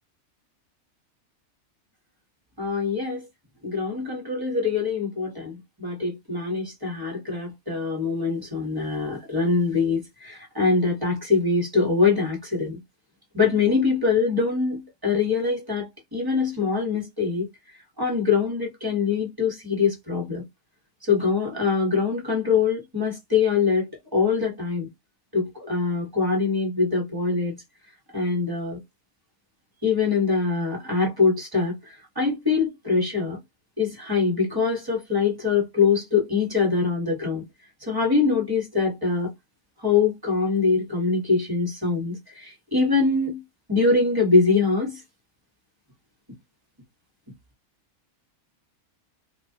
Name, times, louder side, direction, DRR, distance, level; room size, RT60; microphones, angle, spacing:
voice 1, 2.6-3.2 3.6-12.8 13.3-17.5 18.0-20.4 21.1-24.9 25.3-27.5 28.1-28.8 29.8-31.7 32.2-33.4 33.8-37.4 37.8-39.3 39.8-43.4 43.7-45.0, left 4 dB, 20° right, 0.8 m, -23 dB
2.4 x 2.2 x 2.7 m
omnidirectional pair, 1.5 m